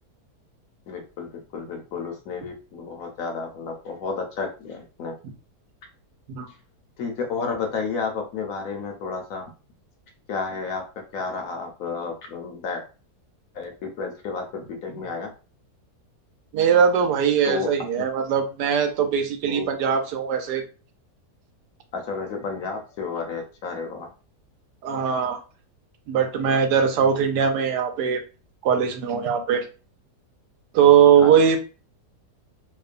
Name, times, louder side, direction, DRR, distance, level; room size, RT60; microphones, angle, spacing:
voice 1, 0.9-5.1 7.0-9.5 10.3-10.8 11.1-12.8 13.5-15.3 17.5-17.7 18.0-18.1 19.5-19.7 21.9-24.1 31.2-31.3, left 5 dB, 70° left, 3 dB, 0.9 m, -31 dB
voice 2, 16.5-20.6 24.8-25.4 26.1-28.2 28.6-29.7 30.7-31.6, right 7 dB, 85° right, 6 dB, 1.2 m, -20 dB
2.9 x 2.1 x 2.4 m, 0.33 s
omnidirectional pair, 1.7 m